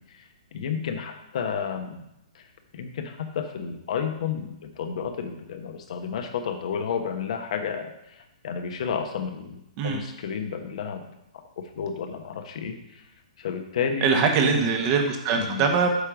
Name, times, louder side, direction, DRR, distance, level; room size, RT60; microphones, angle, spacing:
voice 1, 0.5-2.0 2.3-2.4 2.7-7.9 8.4-11.1 11.6-12.7 13.4-14.7 15.4-15.6, left 6 dB, 60° left, 5 dB, 1.1 m, -31 dB
voice 2, 14.0-15.9, right 5 dB, 35° right, 4 dB, 1.2 m, -22 dB
8.1 x 4.5 x 5.0 m, 0.83 s
hypercardioid pair, 145°, 4 cm